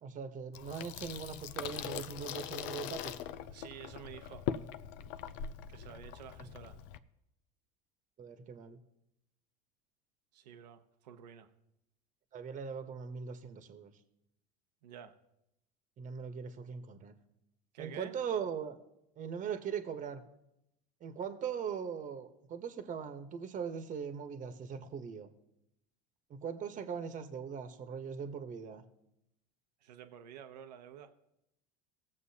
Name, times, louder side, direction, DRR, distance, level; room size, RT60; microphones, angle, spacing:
voice 1, 0.0-3.2 6.4-6.5 8.2-8.8 12.3-13.9 16.0-17.1 17.8-18.8 19.2-20.2 21.0-25.3 26.3-28.8, right 7 dB, 40° right, 7 dB, 1.2 m, -40 dB
Water tap faucet / Sink (filling or washing), 0.5-7.0, left 10 dB, 60° left, 0.6 m, -42 dB
voice 2, 3.5-4.5 5.7-6.8 10.3-11.5 14.8-15.1 17.7-18.2 29.8-31.1, right 9 dB, 85° right, 8 dB, 0.9 m, -50 dB
18.5 x 7.3 x 2.9 m, 0.82 s
hypercardioid pair, 95°, 21 cm